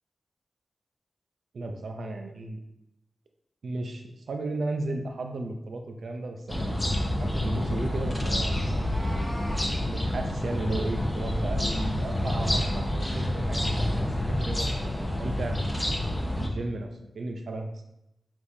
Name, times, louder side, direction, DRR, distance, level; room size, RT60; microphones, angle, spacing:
voice 1, 1.5-2.6 3.6-8.8 9.9-15.9 16.3-17.8, right 2 dB, 80° right, 4 dB, 0.5 m, -35 dB
sound 1, 6.5-16.5, left 1 dB, 20° left, 0.7 m, -28 dB
Meow, 8.6-9.7, right 1 dB, 20° right, 0.9 m, -42 dB
4.8 x 3.6 x 2.7 m, 0.85 s
cardioid pair, 50°, 0 cm